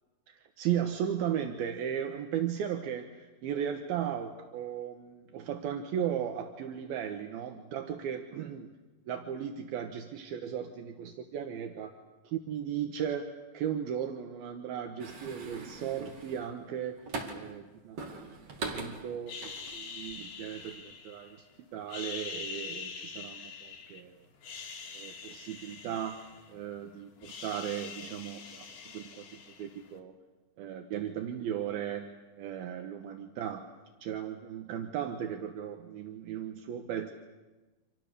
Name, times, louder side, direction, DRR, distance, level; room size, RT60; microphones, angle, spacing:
voice 1, 0.3-8.7 9.1-11.9 12.2-17.0 17.3-21.5 21.7-24.2 24.9-26.2 26.5-28.7 28.9-30.2 30.6-32.1 32.4-33.7 34.0-37.1, right 9 dB, 75° right, 5 dB, 3.0 m, -36 dB
sound 1, 15.0-17.6 18.0-20.1 20.5-20.7, right 3 dB, 45° right, 3.2 m, -41 dB
sound 2, 19.3-21.4 21.8-24.0 24.4-26.8 27.0-29.9, left 5 dB, 85° left, 4.1 m, -44 dB
29.0 x 26.0 x 6.8 m, 1.2 s
omnidirectional pair, 4.4 m